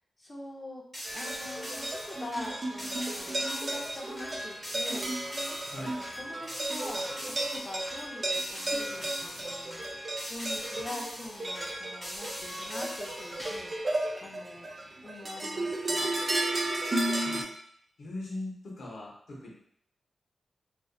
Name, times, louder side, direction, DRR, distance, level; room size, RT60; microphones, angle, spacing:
voice 1, 0.2-0.8 1.1-5.1 5.7-9.9 10.3-14.7 15.0-16.1, left 1 dB, 30° left, 0 dB, 0.5 m, -44 dB
sound 1, 0.9-13.8, equal, 15° left, 1.2 m, -41 dB
sound 2, 1.1-17.4, right 1 dB, 40° right, 0.3 m, -34 dB
voice 2, 18.0-19.5, left 2 dB, 80° left, -4 dB, 0.7 m, -40 dB
2.5 x 2.2 x 2.3 m, 0.67 s
wide cardioid pair, 85°, 0 cm